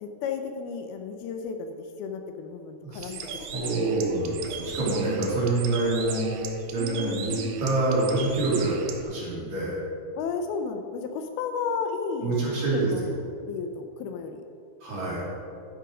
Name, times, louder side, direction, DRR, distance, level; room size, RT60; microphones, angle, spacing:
voice 1, 0.0-3.8 6.8-7.6 10.2-13.1 13.4-14.4, left 5 dB, 80° left, 6 dB, 2.5 m, -33 dB
voice 2, 2.8-3.1 3.5-6.4 6.7-9.8 12.2-13.2 14.8-15.3, right 2 dB, 50° right, -7 dB, 3.9 m, -26 dB
Bird, 2.9-9.0, right 7 dB, 85° right, 1.6 m, -38 dB
11.5 x 8.8 x 5.0 m, 2.5 s
omnidirectional pair, 4.6 m